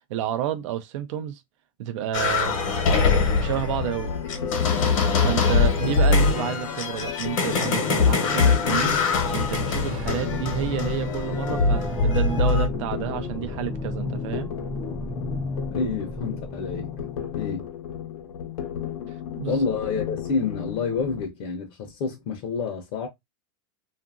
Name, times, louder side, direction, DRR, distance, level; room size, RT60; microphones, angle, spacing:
voice 1, 0.1-1.4 1.8-2.5 3.4-4.1 4.7-4.9 5.2-9.0 9.3-14.5 19.1-19.6, right 11 dB, 65° right, 0.5 m, -30 dB
sound 1, 2.1-12.7, left 4 dB, 65° left, 1.0 m, -23 dB
sound 2, 3.8-21.3, left 9 dB, 90° left, 0.8 m, -35 dB
sound 3, 8.7-17.5, left 1 dB, 5° left, 0.6 m, -33 dB
voice 2, 15.7-16.9 17.3-17.7 19.5-23.1, left 5 dB, 45° left, 0.7 m, -28 dB
2.7 x 2.5 x 2.4 m
supercardioid pair, 155°, 18 cm